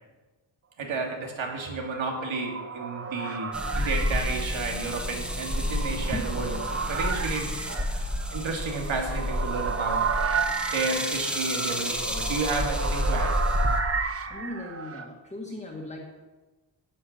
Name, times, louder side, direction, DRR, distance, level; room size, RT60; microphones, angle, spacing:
voice 1, 0.8-7.9 8.3-10.1 10.7-13.4, right 3 dB, 85° right, 1 dB, 2.7 m, -32 dB
sound 1, 1.6-15.1, right 5 dB, 30° right, 0.9 m, -33 dB
sound 2, 3.5-13.8, left 1 dB, ahead, 1.2 m, -30 dB
voice 2, 14.3-16.1, left 1 dB, 15° left, -2 dB, 1.6 m, -38 dB
13.0 x 6.0 x 9.3 m, 1.2 s
wide cardioid pair, 155°, 45 cm